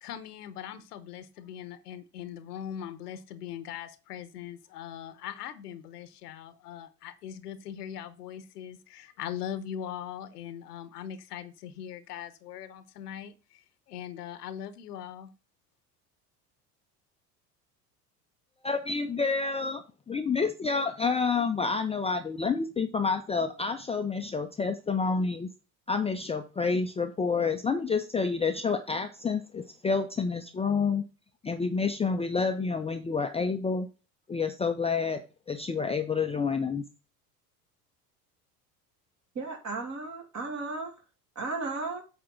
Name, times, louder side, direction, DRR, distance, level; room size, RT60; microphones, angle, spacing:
voice 1, 0.0-15.3, left 9 dB, 75° left, 13 dB, 0.9 m, -40 dB
voice 2, 18.6-25.5 25.9-31.0 31.4-33.9 34.3-35.2 35.5-36.8, left 4 dB, 15° left, 6 dB, 0.6 m, -29 dB
voice 3, 39.3-40.9 41.3-42.0, right 3 dB, 35° right, 2 dB, 2.8 m, -34 dB
8.4 x 3.6 x 6.1 m, 0.32 s
figure-of-eight pair, 70°, 47 cm